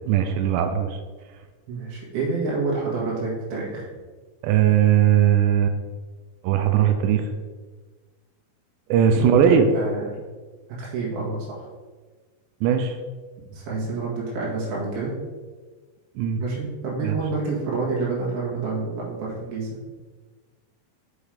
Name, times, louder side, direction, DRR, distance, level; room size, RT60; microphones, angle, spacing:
voice 1, 0.1-1.0 4.4-5.7 6.4-7.3 8.9-9.7 12.6-13.0 16.2-16.4 17.0-17.1, right 9 dB, 85° right, 6 dB, 2.7 m, -19 dB
voice 2, 1.7-3.9 9.1-10.2 10.8-11.7 13.5-15.1 16.4-19.7, right 3 dB, 65° right, -6 dB, 3.1 m, -28 dB
7.1 x 4.6 x 5.0 m, 1.4 s
omnidirectional pair, 5.2 m